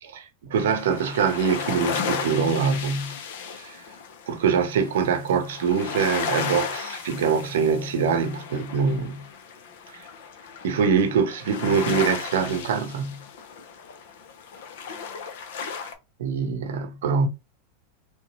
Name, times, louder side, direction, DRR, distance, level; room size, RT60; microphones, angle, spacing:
voice 1, 0.0-3.2 3.5-3.8 4.3-9.3 9.9-10.1 10.6-13.2 16.2-17.3, right 6 dB, 80° right, 0.7 m, -24 dB
sound 1, 0.5-15.9, left 6 dB, 75° left, 0.7 m, -35 dB
3.2 x 2.8 x 3.0 m
supercardioid pair, 125°, 0 cm